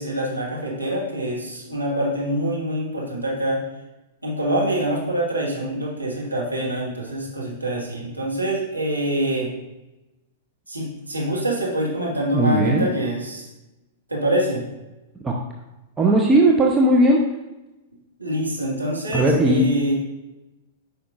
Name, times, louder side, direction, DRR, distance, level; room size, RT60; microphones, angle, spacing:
voice 1, 0.0-3.7 4.2-9.5 10.7-13.5 14.1-14.6 18.2-19.9, right 1 dB, 90° right, -3 dB, 1.6 m, -25 dB
voice 2, 12.3-12.9 15.2-15.4 16.0-17.2 19.1-19.6, right 1 dB, 15° right, -1 dB, 0.8 m, -17 dB
9.3 x 5.1 x 2.5 m, 1.0 s
figure-of-eight pair, 100°, 0 cm